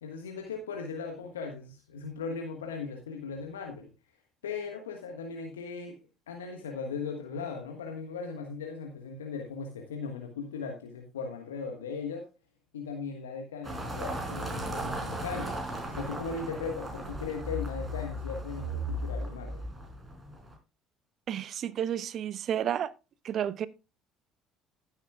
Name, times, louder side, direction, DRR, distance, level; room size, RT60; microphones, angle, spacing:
voice 1, 0.0-3.9 4.4-6.0 6.3-12.2 12.7-15.5 15.9-19.7, left 5 dB, 80° left, 1.4 m, -38 dB
sound 1, 13.6-20.5, equal, 20° right, 5.0 m, -36 dB
voice 2, 21.3-22.9 23.2-23.7, right 9 dB, 50° right, 0.7 m, -31 dB
15.0 x 8.3 x 2.4 m
figure-of-eight pair, 55°, 0 cm